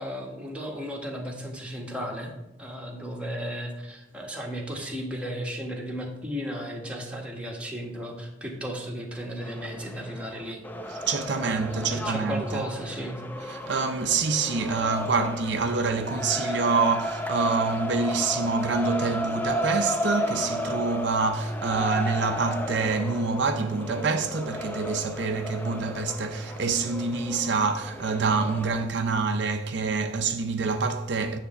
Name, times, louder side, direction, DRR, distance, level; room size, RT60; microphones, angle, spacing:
voice 1, 0.0-2.3 2.6-10.6 10.9-11.0 11.4-13.2, equal, 5° right, 1.3 m, -35 dB
sound 1, 9.4-28.9, equal, 10° left, 0.5 m, -34 dB
voice 2, 10.9-12.7 13.5-31.4, right 4 dB, 70° right, 0.6 m, -26 dB
9.5 x 3.4 x 6.7 m
head